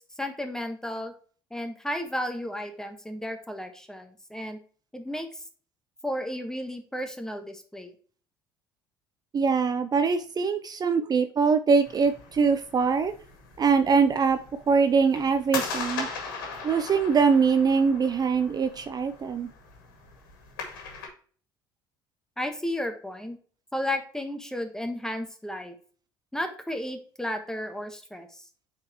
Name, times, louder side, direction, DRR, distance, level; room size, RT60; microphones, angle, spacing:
voice 1, 0.2-1.1 1.5-4.6 4.9-5.4 6.0-7.9 11.0-11.1 22.4-23.4 23.7-25.7 26.3-28.4, left 1 dB, 5° left, 7 dB, 1.3 m, -33 dB
voice 2, 9.3-13.1 13.6-14.4 14.7-16.1 16.6-19.5, right 5 dB, 35° right, 9 dB, 0.6 m, -23 dB
sound 1, 11.8-21.1, left 4 dB, 80° left, 1.8 m, -39 dB
8.5 x 4.3 x 3.0 m, 0.43 s
hypercardioid pair, 60°, 11 cm